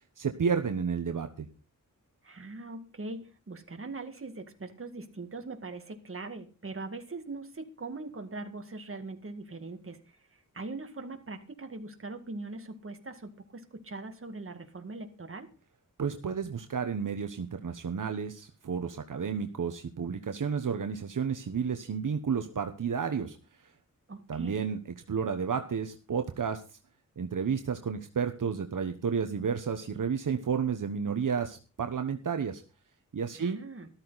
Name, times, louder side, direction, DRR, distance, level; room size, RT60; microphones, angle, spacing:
voice 1, 0.2-1.5 16.0-23.4 24.3-26.6 27.2-32.6 33.1-33.6, right 6 dB, 70° right, 6 dB, 1.1 m, -31 dB
voice 2, 2.2-10.2 10.5-15.5 24.1-24.6 33.3-33.9, right 3 dB, 40° right, 5 dB, 2.1 m, -41 dB
13.5 x 13.0 x 4.1 m, 0.33 s
wide cardioid pair, 110°, 33 cm